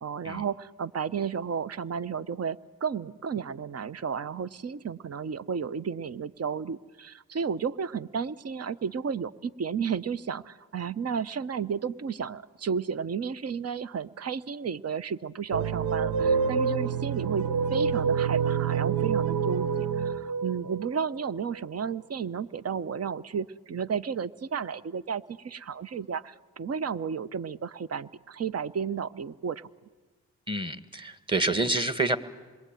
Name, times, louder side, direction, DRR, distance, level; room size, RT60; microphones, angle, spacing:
voice 1, 0.0-29.7, right 6 dB, 40° right, 16 dB, 0.9 m, -33 dB
sound 1, 15.5-21.7, right 6 dB, 85° right, 0.9 m, -27 dB
voice 2, 30.5-32.2, right 2 dB, 15° right, 10 dB, 2.1 m, -27 dB
27.5 x 22.0 x 9.2 m, 1.4 s
supercardioid pair, 55°, 36 cm